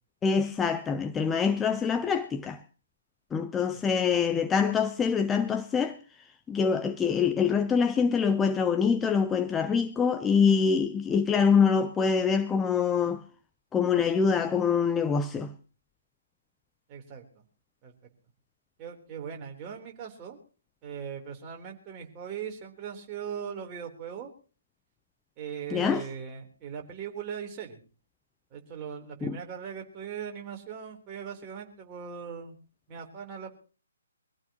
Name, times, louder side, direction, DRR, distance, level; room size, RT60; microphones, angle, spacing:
voice 1, 0.2-2.6 3.3-6.0 6.5-13.2 13.7-15.5 25.7-26.1 29.2-29.4, left 6 dB, 10° left, 0.7 m, -25 dB
voice 2, 16.9-17.2 17.8-17.9 18.8-20.4 20.8-24.3 25.4-27.8 28.5-32.6 32.9-33.6, right 7 dB, 25° right, 3.7 m, -39 dB
24.0 x 15.5 x 3.0 m
figure-of-eight pair, 135°, 0 cm